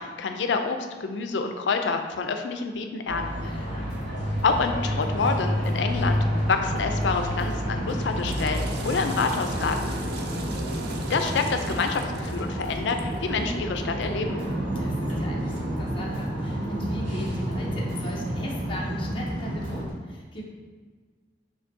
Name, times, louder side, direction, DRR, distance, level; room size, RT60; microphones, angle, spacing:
voice 1, 0.0-3.6 4.4-10.0 11.1-14.4, left 4 dB, 70° left, 6 dB, 0.4 m, -27 dB
sound 1, 3.1-19.9, equal, 90° right, 1.3 m, -29 dB
voice 2, 3.4-3.9 10.0-10.5 14.7-20.4, equal, 30° left, -3 dB, 0.6 m, -38 dB
sound 2, 3.9-19.9, equal, 50° left, 1.3 m, -41 dB
Water / Toilet flush, 8.0-13.2, right 3 dB, 60° right, 0.4 m, -41 dB
6.8 x 2.7 x 2.6 m, 1.5 s
head